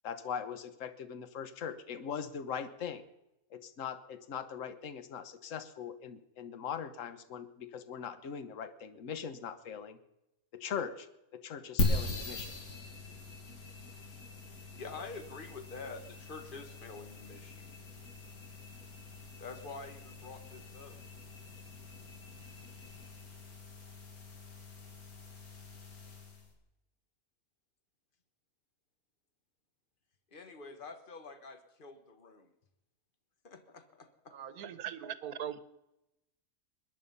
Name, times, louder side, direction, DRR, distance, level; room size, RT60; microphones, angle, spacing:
voice 1, 0.0-3.0 3.5-10.0 10.5-11.1 11.3-12.5, left 7 dB, 60° left, 11 dB, 1.4 m, -41 dB
sound 1, 11.8-26.5, left 1 dB, 80° left, 2.8 m, -40 dB
voice 2, 14.7-17.7 19.4-21.0 30.3-32.5 33.4-34.3, left 4 dB, 35° left, 7 dB, 1.5 m, -47 dB
voice 3, 34.3-35.6, right 9 dB, 85° right, 14 dB, 1.4 m, -40 dB
21.5 x 10.0 x 5.5 m, 0.91 s
omnidirectional pair, 1.5 m